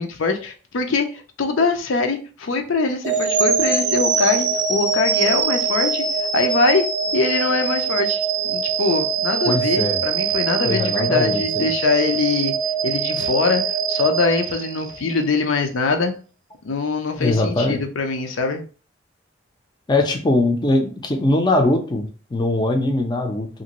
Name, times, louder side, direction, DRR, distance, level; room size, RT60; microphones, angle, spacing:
voice 1, 0.0-6.0 6.3-6.8 7.1-12.5 12.8-13.6 13.9-16.1 16.6-18.6, left 4 dB, 85° left, 5 dB, 0.5 m, -22 dB
sound 1, 3.0-15.2, right 6 dB, 40° right, 0.5 m, -23 dB
voice 2, 9.5-10.0 10.6-11.7 17.2-17.8 19.9-23.5, left 2 dB, 20° left, 3 dB, 0.4 m, -21 dB
2.9 x 2.6 x 2.9 m, 0.37 s
head